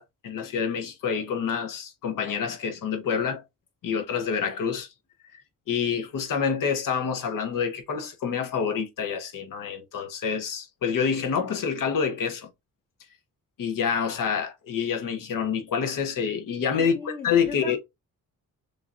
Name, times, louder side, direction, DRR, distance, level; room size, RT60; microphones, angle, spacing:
voice 1, 0.0-3.4 3.8-4.9 5.7-12.5 13.6-17.8, left 6 dB, 70° left, 1.2 m, -27 dB
voice 2, 16.8-17.8, left 3 dB, 25° left, 0.9 m, -38 dB
6.5 x 2.8 x 2.5 m
wide cardioid pair, 150°, 33 cm